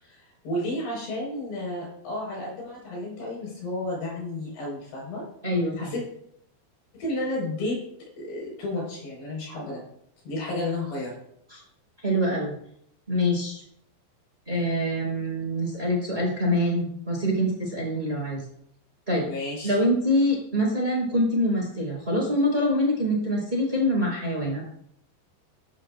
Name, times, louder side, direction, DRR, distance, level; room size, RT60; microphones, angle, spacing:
voice 1, 0.0-5.2 5.8-6.0 6.9-7.8 8.2-9.8 10.3-11.2 19.2-19.8, left 1 dB, 65° left, -3 dB, 7.3 m, -32 dB
voice 2, 5.4-5.9 11.5-11.6 12.0-12.5 13.1-13.6 14.5-18.4 19.1-19.2 19.6-24.6, equal, 15° right, -3 dB, 4.4 m, -25 dB
16.5 x 11.5 x 2.6 m, 0.70 s
omnidirectional pair, 5.1 m